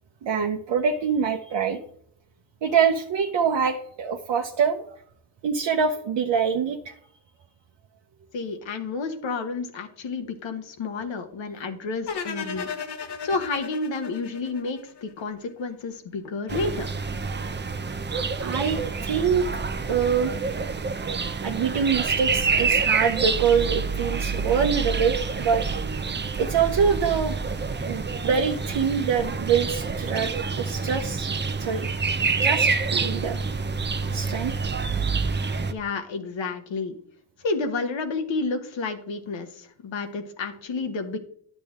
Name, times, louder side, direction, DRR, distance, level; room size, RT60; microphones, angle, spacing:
voice 1, 0.2-1.8 2.6-4.8 5.4-6.9 17.4-17.7 18.4-19.5 19.8-20.3 21.4-25.6 26.4-27.4 27.9-31.3 31.6-31.9 32.4-33.4 34.1-34.5, right 6 dB, 70° right, 3 dB, 0.8 m, -25 dB
voice 2, 8.3-12.7 13.2-16.9 35.7-36.9 37.4-41.2, left 3 dB, 75° left, 6 dB, 1.3 m, -30 dB
sound 1, 12.1-15.2, left 6 dB, 60° left, 1.2 m, -35 dB
sound 2, 16.5-35.7, right 4 dB, 25° right, 0.6 m, -27 dB
10.5 x 6.8 x 3.6 m, 0.63 s
cardioid pair, 90°, 46 cm